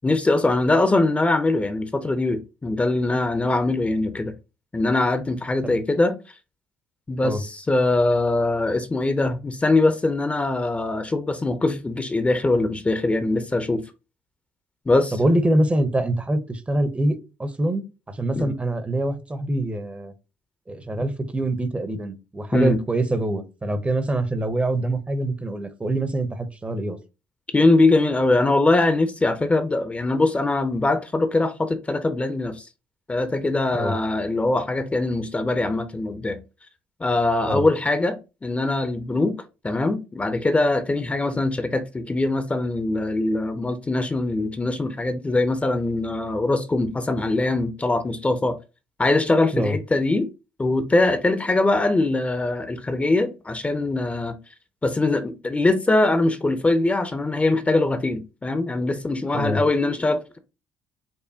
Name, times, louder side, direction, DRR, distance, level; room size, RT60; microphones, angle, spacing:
voice 1, 0.0-4.3 4.7-6.1 7.1-13.8 14.9-15.2 18.4-18.5 22.5-22.8 27.5-32.7 33.1-36.4 37.0-38.2 38.4-39.3 39.6-48.6 49.0-50.3 50.6-54.3 54.8-60.4, left 2 dB, 20° left, 0.6 m, -22 dB
voice 2, 15.1-17.8 18.1-20.1 20.7-27.0 33.7-34.0 37.5-37.7 49.5-49.8 59.3-59.6, right 1 dB, 20° right, 0.7 m, -24 dB
5.4 x 2.1 x 2.7 m
hypercardioid pair, 55°, 6 cm